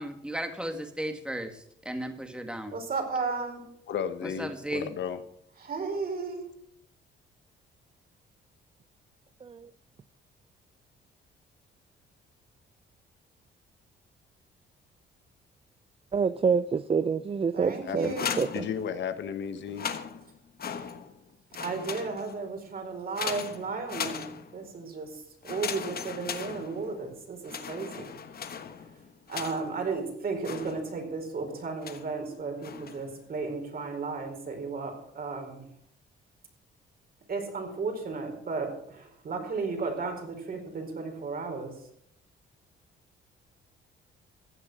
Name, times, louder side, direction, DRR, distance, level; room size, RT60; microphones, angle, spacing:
voice 1, 0.0-2.7 4.2-4.9, right 1 dB, 5° right, 2.1 m, -35 dB
voice 2, 2.7-3.6 5.6-6.4 17.5-18.3 21.6-25.1 25.4-28.1 29.3-35.6 37.3-41.7, right 4 dB, 50° right, 4.6 m, -34 dB
voice 3, 3.9-5.2 17.8-18.2 18.5-19.9, left 8 dB, 65° left, 1.3 m, -34 dB
voice 4, 16.1-18.1 18.4-18.7, right 6 dB, 30° right, 0.5 m, -27 dB
sound 1, 18.0-19.2 19.6-21.2 21.5-22.5 23.2-24.7 25.4-27.1 27.4-29.9 30.4-31.2 31.8-32.2 32.6-33.1, left 7 dB, 50° left, 1.3 m, -38 dB
15.5 x 8.6 x 6.3 m
cardioid pair, 90°, 20 cm